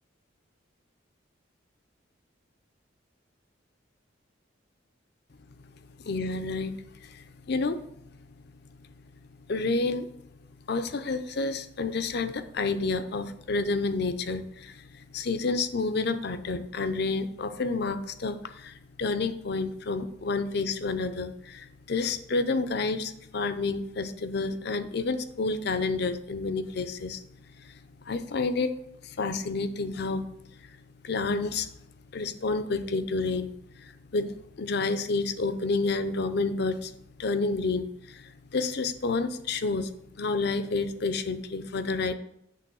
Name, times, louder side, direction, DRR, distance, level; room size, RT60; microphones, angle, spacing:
voice 1, 6.0-7.8 9.5-10.1 10.7-27.2 27.6-27.7 28.1-28.8 29.0-30.3 30.6-30.7 31.0-31.7 32.1-33.5 33.8-36.9 37.2-42.1, left 3 dB, 55° left, 11 dB, 0.5 m, -29 dB
8.5 x 3.4 x 6.1 m, 0.76 s
head